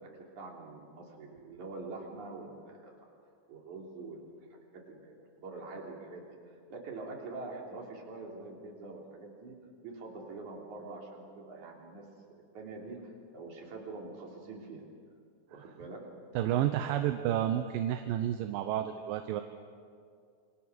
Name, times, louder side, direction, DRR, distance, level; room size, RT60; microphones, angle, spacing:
voice 1, 0.0-3.1 3.5-4.2 4.5-4.6 4.9-6.2 6.7-9.5 9.8-12.0 12.5-14.8 15.5-16.0, right 3 dB, 55° right, -1 dB, 4.6 m, -45 dB
voice 2, 16.4-19.4, right 11 dB, 75° right, 8 dB, 2.4 m, -30 dB
28.0 x 23.0 x 6.3 m, 2.3 s
omnidirectional pair, 4.3 m